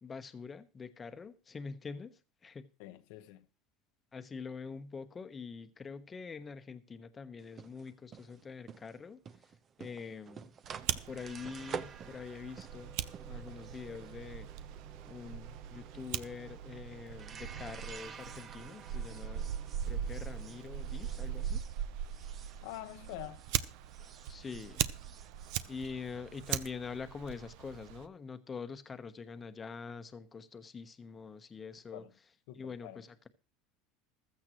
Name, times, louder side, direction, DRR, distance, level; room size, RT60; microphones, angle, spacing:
voice 1, 0.0-2.7 4.1-9.2 9.8-10.5 11.1-13.0 13.2-14.5 15.1-19.5 19.9-21.6 24.3-24.8 25.7-32.1 32.5-33.3, left 5 dB, 20° left, 1.1 m, -45 dB
voice 2, 2.8-3.4 22.6-23.4 31.9-32.1 32.5-33.0, left 16 dB, 75° left, 1.1 m, -46 dB
sound 1, 7.4-23.6 23.9-26.5, right 6 dB, 35° right, 0.9 m, -50 dB
Fire, 10.6-28.1, right 10 dB, 70° right, 0.7 m, -40 dB
15.0 x 13.5 x 3.1 m
supercardioid pair, 125°, 0 cm